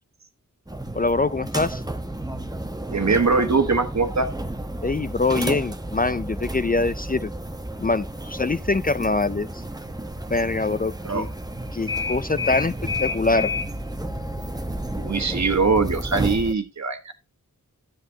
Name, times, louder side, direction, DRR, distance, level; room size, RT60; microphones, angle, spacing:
sound 1, 0.7-16.5, equal, 10° right, 1.0 m, -31 dB
voice 1, 0.9-1.8 4.8-7.3 7.8-9.6 10.3-11.3 11.7-12.7 13.0-13.5, left 3 dB, 25° left, 0.5 m, -24 dB
voice 2, 2.9-4.3 11.0-11.2 15.0-17.1, right 4 dB, 55° right, 1.4 m, -22 dB
11.5 x 7.8 x 2.8 m
cardioid pair, 40°, 33 cm